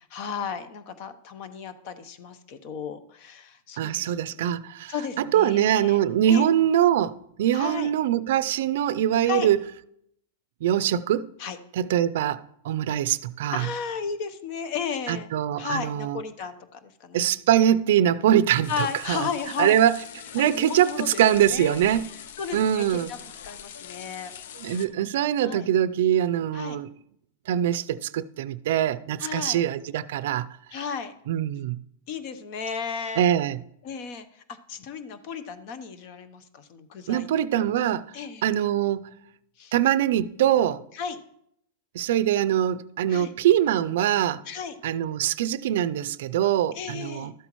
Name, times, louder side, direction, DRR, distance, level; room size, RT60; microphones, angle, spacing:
voice 1, 0.0-4.5 4.9-6.0 6.3-6.5 7.5-7.9 9.2-9.5 11.4-11.6 13.5-15.3 15.6-17.3 18.7-19.8 20.4-21.8 22.4-23.2 23.4-24.3 24.7-24.9 25.4-25.7 26.5-26.8 29.2-29.6 30.7-31.1 32.1-33.3 33.8-37.3 37.5-37.6 38.1-38.5 39.6-39.7 40.9-41.2 43.1-43.3 44.5-44.8 46.7-47.3, left 6 dB, 50° left, 0.9 m, -34 dB
voice 2, 3.8-9.6 10.6-11.3 11.8-13.7 15.1-16.2 17.1-19.3 19.6-20.0 20.3-22.0 22.5-23.1 24.6-26.9 27.5-30.5 31.3-31.8 33.2-33.6 37.1-38.0 38.4-39.1 39.7-40.8 41.9-44.4 44.8-47.3, right 11 dB, 70° right, 0.4 m, -23 dB
sound 1, 18.6-24.9, left 8 dB, 70° left, 0.6 m, -43 dB
12.5 x 8.0 x 3.1 m
supercardioid pair, 140°, 0 cm